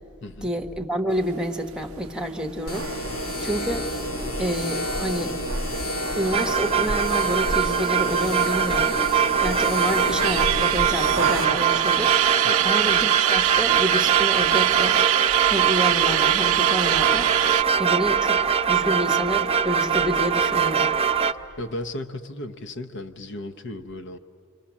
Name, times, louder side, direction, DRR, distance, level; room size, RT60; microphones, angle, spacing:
voice 1, 0.4-2.9 3.4-3.9 4.4-5.4 6.1-9.0 9.4-12.2 12.6-15.0 15.5-17.4 17.8-20.9, equal, 5° right, 4 dB, 1.2 m, -28 dB
sound 1, 2.7-11.4, equal, 90° left, 3.2 m, -29 dB
sound 2, 2.7-7.8 8.1-8.2 8.4-9.4 9.8-17.6, right 12 dB, 75° right, 0.5 m, -25 dB
sound 3, 6.3-21.3, right 7 dB, 30° right, 0.6 m, -23 dB
voice 2, 21.6-24.2, left 1 dB, 60° left, 8 dB, 0.9 m, -35 dB
28.0 x 25.0 x 7.3 m, 2.5 s
head